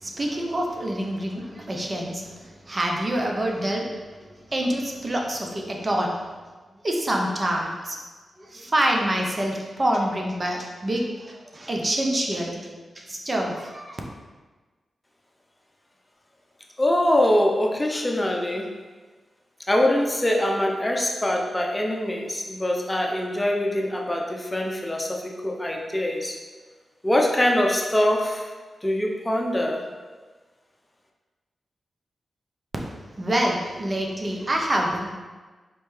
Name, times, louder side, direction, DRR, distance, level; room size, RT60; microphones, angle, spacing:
voice 1, 0.0-2.3 2.7-3.9 4.5-6.2 6.8-8.0 8.4-12.6 13.0-14.0 33.2-35.1, right 1 dB, 40° right, 0 dB, 0.7 m, -26 dB
voice 2, 16.8-18.7 19.7-26.4 27.0-28.5 28.8-29.8, left 1 dB, 20° left, 0 dB, 0.7 m, -23 dB
4.4 x 3.2 x 3.2 m, 1.3 s
supercardioid pair, 40°, 0 cm